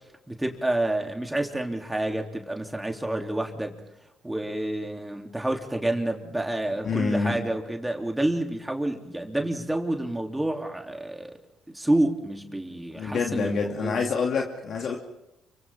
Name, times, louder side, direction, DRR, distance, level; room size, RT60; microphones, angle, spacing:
voice 1, 0.3-3.8 4.2-11.3 11.7-14.0, right 1 dB, 10° right, 2 dB, 3.2 m, -28 dB
voice 2, 6.8-7.4 12.9-15.0, left 5 dB, 55° left, 0 dB, 2.7 m, -27 dB
29.5 x 25.0 x 3.7 m, 0.89 s
hypercardioid pair, 55°, 0 cm